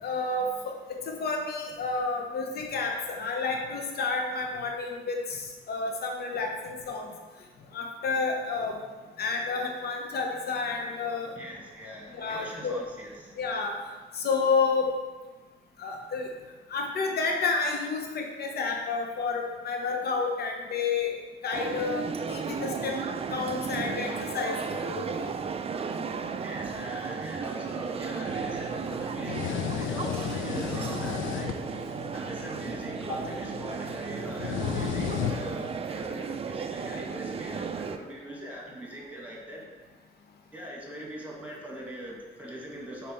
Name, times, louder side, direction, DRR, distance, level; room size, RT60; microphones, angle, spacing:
voice 1, 0.0-7.1 7.7-8.8 9.2-11.3 12.1-12.8 13.4-13.8 14.1-14.9 15.8-16.3 16.7-21.1 21.4-23.0 23.3-25.3 33.1-33.2, left 4 dB, 50° left, 2 dB, 0.8 m, -30 dB
voice 2, 11.3-13.4 26.4-39.6 40.5-43.1, right 1 dB, 5° right, -3 dB, 1.7 m, -41 dB
sound 1, 21.5-38.0, right 5 dB, 30° right, 0.4 m, -34 dB
sound 2, 28.3-35.7, left 9 dB, 75° left, 0.4 m, -35 dB
5.3 x 4.2 x 4.3 m, 1.3 s
cardioid pair, 90°, 20 cm